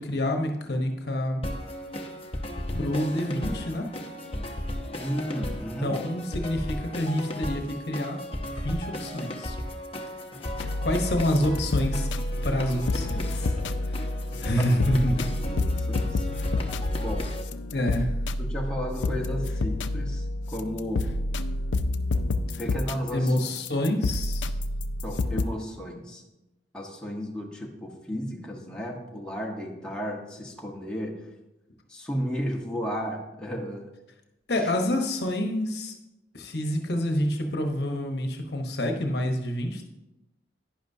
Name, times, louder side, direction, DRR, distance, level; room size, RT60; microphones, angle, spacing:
voice 1, 0.0-1.4 2.7-3.9 5.8-8.2 8.6-9.6 10.8-12.1 12.4-13.5 13.9-14.0 14.4-15.2 17.7-18.1 23.1-24.5 34.5-35.9 36.3-39.9, left 1 dB, 60° left, 4 dB, 1.0 m, -27 dB
sound 1, 1.4-17.4, left 1 dB, 30° left, 0.9 m, -35 dB
voice 2, 5.0-6.0 14.6-14.8 15.1-16.2 17.0-17.3 18.4-21.1 22.6-23.3 25.0-26.2 26.7-31.2 31.9-33.9, equal, 5° left, -2 dB, 1.1 m, -33 dB
sound 2, 10.6-25.5, left 2 dB, 85° left, 0.5 m, -29 dB
11.0 x 10.0 x 2.7 m, 0.95 s
head